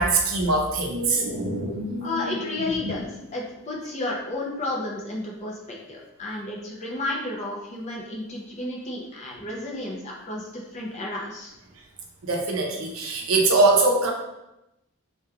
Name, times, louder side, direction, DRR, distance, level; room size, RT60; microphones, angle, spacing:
voice 1, 0.0-2.9 12.2-14.1, right 2 dB, 75° right, 1 dB, 0.5 m, -23 dB
voice 2, 2.0-11.5, left 2 dB, 30° left, -2 dB, 0.5 m, -32 dB
2.8 x 2.3 x 2.4 m, 0.91 s
head